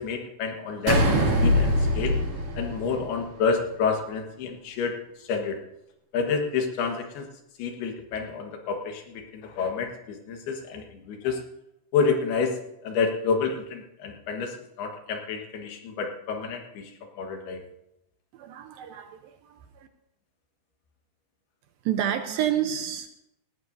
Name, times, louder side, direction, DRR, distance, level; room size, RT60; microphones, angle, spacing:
voice 1, 0.0-2.2 2.6-4.9 5.3-5.6 6.1-7.3 7.6-11.4 11.9-12.6 12.8-16.9 17.2-17.6, left 5 dB, 75° left, 4 dB, 3.4 m, -29 dB
sound 1, 0.9-3.4, equal, 50° right, 3.6 m, -23 dB
voice 2, 18.3-19.9 21.9-23.1, right 10 dB, 75° right, 7 dB, 2.3 m, -29 dB
18.0 x 18.0 x 2.7 m, 0.86 s
omnidirectional pair, 4.7 m